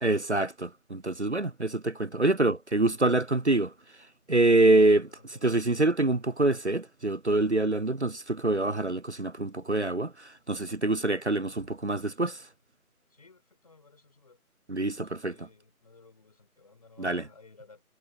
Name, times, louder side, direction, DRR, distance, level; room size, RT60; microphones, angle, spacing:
voice 1, 0.0-3.7 4.3-5.1 5.4-10.1 10.5-12.4 14.7-15.3 17.0-17.2, right 2 dB, 50° right, 0.5 m, -25 dB
voice 2, 4.7-5.5 13.1-14.4 15.0-17.8, left 4 dB, 25° left, 5.4 m, -56 dB
figure-of-eight pair, 170°, 45 cm